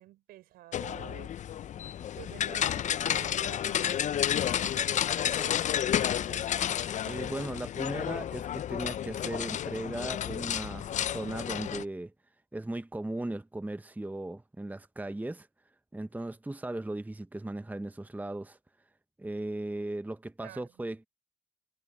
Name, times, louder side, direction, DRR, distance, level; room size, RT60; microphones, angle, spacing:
voice 1, 0.0-1.6 2.2-6.8 20.4-20.7, right 16 dB, 85° right, 6.3 m, -50 dB
sound 1, 0.7-11.8, left 10 dB, 55° left, 0.4 m, -31 dB
voice 2, 7.0-12.1 12.5-15.5 15.9-18.6 19.2-21.1, right 2 dB, 10° right, 1.0 m, -37 dB
supercardioid pair, 60°, 15 cm